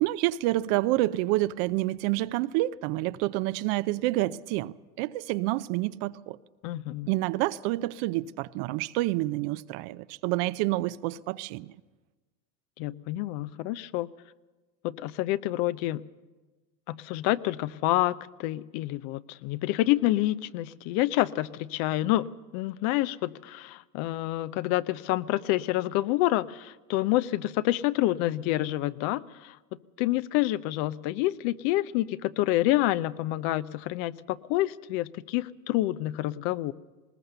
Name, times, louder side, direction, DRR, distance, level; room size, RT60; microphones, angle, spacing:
voice 1, 0.0-6.4 7.1-11.7, right 17 dB, 55° right, 0.7 m, -28 dB
voice 2, 6.6-7.1 12.8-14.1 14.8-16.0 16.9-22.3 22.5-29.6 30.0-36.7, left 16 dB, 55° left, 0.8 m, -28 dB
20.5 x 19.5 x 6.8 m
hypercardioid pair, 100°, 49 cm